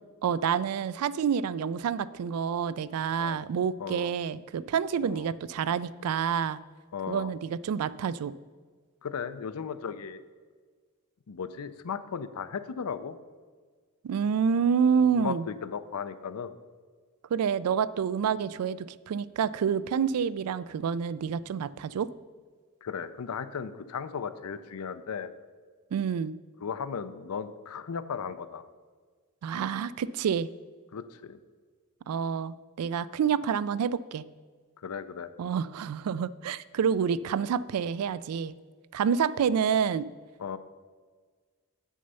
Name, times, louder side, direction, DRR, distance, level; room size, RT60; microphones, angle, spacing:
voice 1, 0.2-6.6 7.1-8.3 14.0-15.4 17.3-22.1 25.9-26.3 29.4-30.5 32.1-34.2 35.4-38.5 38.9-40.1, right 7 dB, 85° right, 18 dB, 0.3 m, -28 dB
voice 2, 3.8-4.1 5.0-5.3 6.9-7.3 9.0-10.2 11.3-13.2 15.0-16.6 18.4-18.5 22.8-25.3 26.6-28.6 30.9-31.4 34.8-35.3 40.4-40.6, left 6 dB, 85° left, 13 dB, 0.5 m, -36 dB
7.9 x 6.3 x 5.5 m, 1.5 s
head